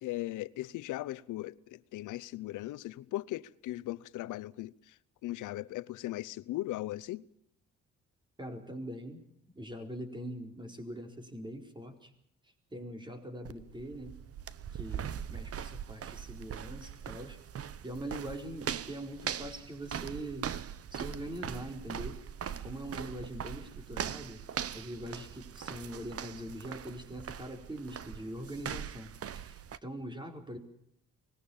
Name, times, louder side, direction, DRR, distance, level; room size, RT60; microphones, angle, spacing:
voice 1, 0.0-7.2, left 16 dB, 85° left, 0.8 m, -38 dB
voice 2, 8.4-9.2 9.5-12.1 12.7-14.2 14.7-17.4 17.8-20.5 20.9-22.2 22.6-24.4 24.7-30.6, right 1 dB, 15° right, 4.5 m, -42 dB
sound 1, 13.5-29.8, right 8 dB, 50° right, 1.0 m, -41 dB
25.0 x 20.0 x 7.2 m
cardioid pair, 90°, 30 cm